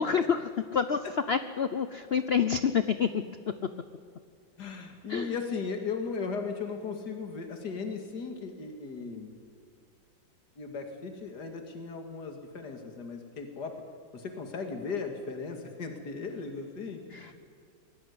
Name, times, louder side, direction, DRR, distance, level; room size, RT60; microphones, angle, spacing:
voice 1, 0.0-3.2 5.1-5.4 17.1-17.4, left 6 dB, 80° left, 11 dB, 0.5 m, -28 dB
voice 2, 4.6-9.3 10.6-13.7 14.1-17.4, left 5 dB, 55° left, 5 dB, 2.8 m, -37 dB
22.0 x 17.0 x 9.7 m, 2.3 s
omnidirectional pair, 2.1 m